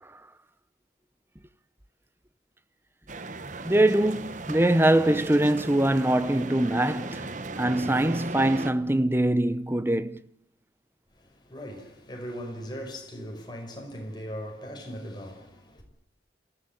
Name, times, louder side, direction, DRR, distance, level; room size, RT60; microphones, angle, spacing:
Crowd Noise light, 3.1-8.7, right 2 dB, 45° right, 1.2 m, -37 dB
voice 1, 3.6-7.3 7.6-10.2, right 1 dB, 15° right, 0.9 m, -23 dB
voice 2, 11.1-15.8, equal, 25° left, 5.3 m, -39 dB
27.5 x 15.5 x 9.1 m
head